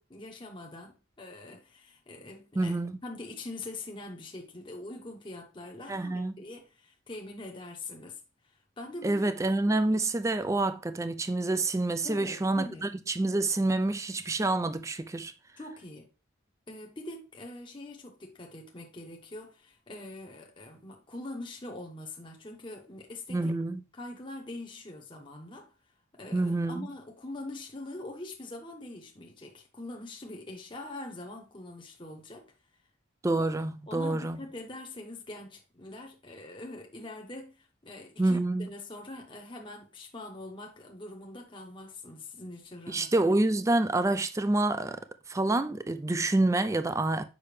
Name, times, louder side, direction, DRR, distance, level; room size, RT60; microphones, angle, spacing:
voice 1, 0.0-9.2 12.0-12.9 15.6-16.1 16.7-23.5 23.9-25.7 26.1-32.5 33.9-43.3, left 2 dB, 25° left, 0.9 m, -43 dB
voice 2, 2.6-3.0 5.9-6.4 9.0-15.3 23.3-23.8 26.3-26.9 33.2-34.4 38.2-38.7 42.9-45.0 45.3-47.2, right 2 dB, 15° right, 0.4 m, -27 dB
6.8 x 5.6 x 3.2 m
head